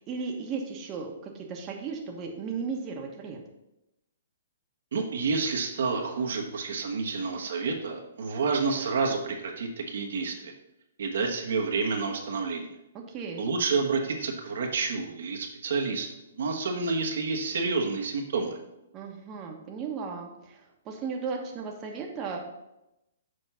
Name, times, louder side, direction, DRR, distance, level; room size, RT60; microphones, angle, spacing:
voice 1, 0.0-3.4 12.9-13.5 18.9-22.4, right 5 dB, 25° right, 1 dB, 1.1 m, -35 dB
voice 2, 4.9-10.5 11.0-12.7 13.4-16.1 16.4-18.6, right 4 dB, 70° right, 2 dB, 1.2 m, -29 dB
6.5 x 4.4 x 5.5 m, 0.90 s
hypercardioid pair, 135°, 0 cm